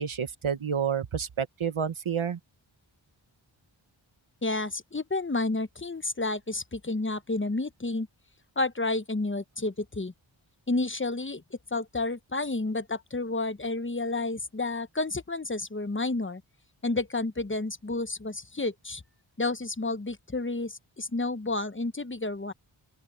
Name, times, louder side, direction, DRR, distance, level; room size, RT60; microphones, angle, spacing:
voice 1, 0.0-2.4, right 7 dB, 85° right, 1.2 m, -29 dB
voice 2, 4.4-8.1 8.6-10.1 10.7-11.4 11.7-16.4 16.8-19.0 19.4-22.5, left 2 dB, 25° left, 1.0 m, -30 dB
open air
wide cardioid pair, 55°, 47 cm